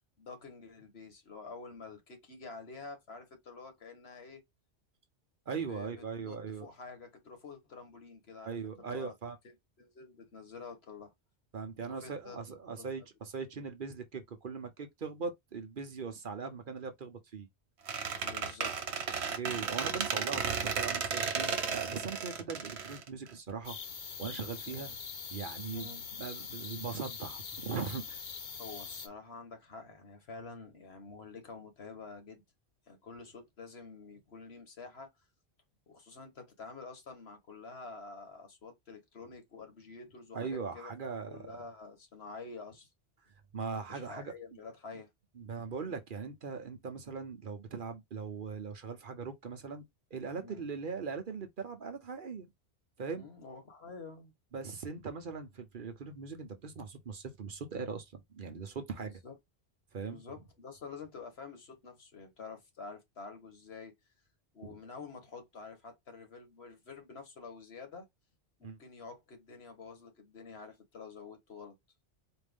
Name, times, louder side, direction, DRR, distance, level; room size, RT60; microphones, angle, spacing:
voice 1, 0.2-4.4 5.7-9.1 9.8-11.1 11.9-12.4 12.8-13.0 18.2-19.0 24.7-25.0 25.7-26.0 28.6-32.4 32.9-35.1 35.9-42.9 43.9-45.1 50.3-50.6 53.2-54.3 59.0-59.4 60.1-63.9 64.5-68.1 68.6-71.8, left 4 dB, 70° left, 1.6 m, -48 dB
voice 2, 5.5-6.7 8.4-9.4 11.5-17.5 19.4-23.8 24.2-24.9 25.3-28.2 40.3-41.5 43.5-44.3 45.4-49.8 50.1-52.5 53.0-53.3 54.5-59.2 59.9-60.2 64.6-64.8 68.6-68.8, right 5 dB, 55° right, 0.9 m, -40 dB
Squeak, 17.9-23.7, right 6 dB, 80° right, 1.2 m, -34 dB
sound 1, 23.6-29.1, left 6 dB, 50° left, 0.9 m, -43 dB
4.4 x 2.5 x 3.5 m
omnidirectional pair, 1.1 m